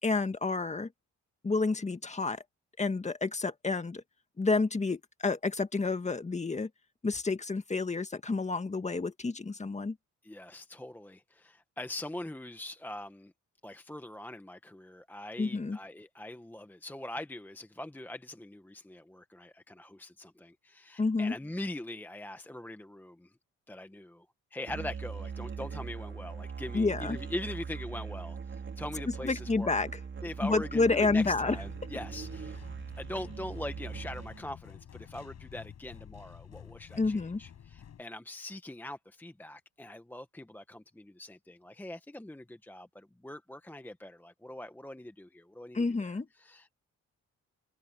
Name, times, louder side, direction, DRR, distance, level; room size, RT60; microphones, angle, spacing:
voice 1, 0.0-0.9 1.4-2.4 2.8-4.0 4.4-6.7 7.0-10.0 15.4-15.8 21.0-21.3 26.7-27.2 29.2-29.9 30.4-31.6 37.0-37.4 45.7-46.3, left 3 dB, 25° left, 1.8 m, -29 dB
voice 2, 10.2-13.3 13.6-23.3 23.7-24.2 24.5-29.7 30.2-32.6 33.0-46.8, left 1 dB, 5° left, 1.1 m, -42 dB
Musical instrument, 24.7-34.5, right 5 dB, 40° right, 3.6 m, -41 dB
sound 1, 31.0-38.0, left 9 dB, 60° left, 6.8 m, -50 dB
cardioid pair, 90°, 30 cm